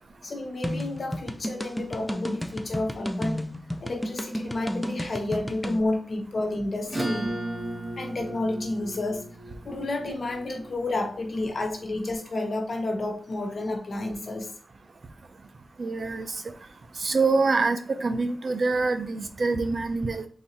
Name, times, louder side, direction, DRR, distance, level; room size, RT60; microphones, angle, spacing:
voice 1, 0.2-3.4 3.8-7.3 8.0-9.2 9.6-14.5, left 2 dB, 60° left, 2 dB, 1.1 m, -30 dB
sound 1, 0.6-5.8, equal, 5° left, 0.4 m, -32 dB
Acoustic guitar / Strum, 6.9-11.8, right 1 dB, 15° right, 1.4 m, -35 dB
voice 2, 15.8-16.4 17.0-20.3, right 3 dB, 55° right, 8 dB, 0.5 m, -25 dB
3.9 x 2.7 x 4.3 m, 0.43 s
wide cardioid pair, 120°, 0 cm